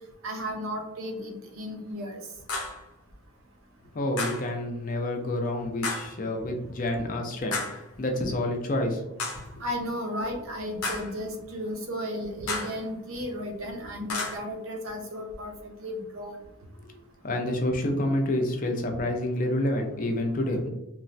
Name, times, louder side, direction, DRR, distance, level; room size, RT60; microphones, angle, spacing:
voice 1, 0.2-2.2 9.6-16.3, equal, 70° right, 2 dB, 0.6 m, -34 dB
sound 1, 2.5-2.8 4.2-4.5 5.8-6.2 7.5-7.9 9.2-9.5 10.8-11.2 12.5-12.8 14.1-14.4, left 3 dB, 85° left, 0.6 m, -32 dB
voice 2, 3.9-9.0 16.8-16.9 17.2-20.7, left 1 dB, 40° left, 3 dB, 0.4 m, -28 dB
3.0 x 2.1 x 2.5 m, 0.90 s
head